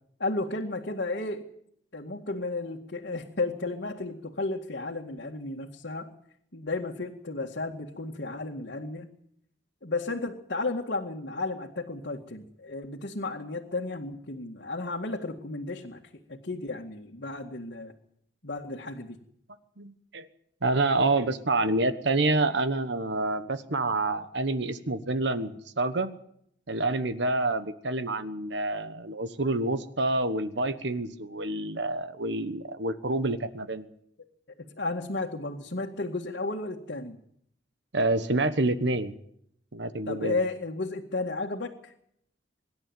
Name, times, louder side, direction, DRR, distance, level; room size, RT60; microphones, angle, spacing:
voice 1, 0.2-1.5 1.9-6.1 6.5-9.1 9.8-16.0 16.3-17.9 18.4-19.2 34.6-37.2 40.1-41.9, left 2 dB, 65° left, -1 dB, 2.1 m, -33 dB
voice 2, 19.8-20.3 20.6-26.1 26.7-33.9 37.9-39.1 39.7-40.4, right 2 dB, 65° right, 11 dB, 1.3 m, -28 dB
25.0 x 11.5 x 9.4 m, 0.70 s
head